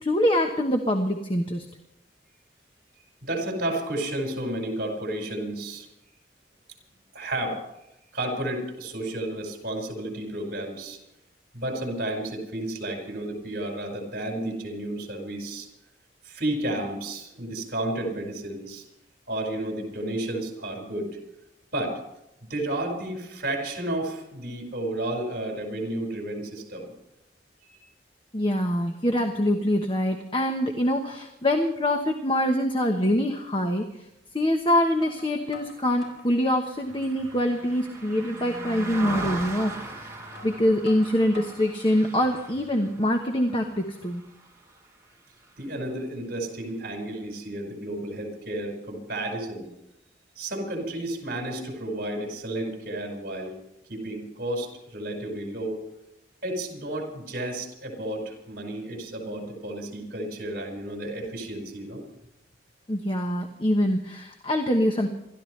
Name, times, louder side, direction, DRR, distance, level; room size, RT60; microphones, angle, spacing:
voice 1, 0.0-1.7 28.3-33.8 34.3-40.0 40.4-44.2 62.9-65.1, left 1 dB, 30° left, 4 dB, 1.1 m, -24 dB
voice 2, 3.2-5.9 7.1-7.6 8.1-11.0 11.5-15.7 16.2-18.8 19.3-21.2 21.7-22.0 22.4-26.9 27.6-27.8 45.6-49.7 50.4-53.6 53.9-55.8 56.4-62.0, right 1 dB, 55° right, 1 dB, 5.2 m, -32 dB
sound 1, 33.0-33.2 34.4-34.5 35.0-36.3 36.8-37.4 37.8-37.9 38.4-38.5 39.7-39.8 40.3-41.7 42.2-42.7, left 3 dB, 80° left, 5.6 m, -48 dB
Car passing by, 35.5-45.0 45.4-45.6, right 2 dB, 15° right, 2.8 m, -39 dB
27.5 x 13.5 x 3.3 m, 0.85 s
head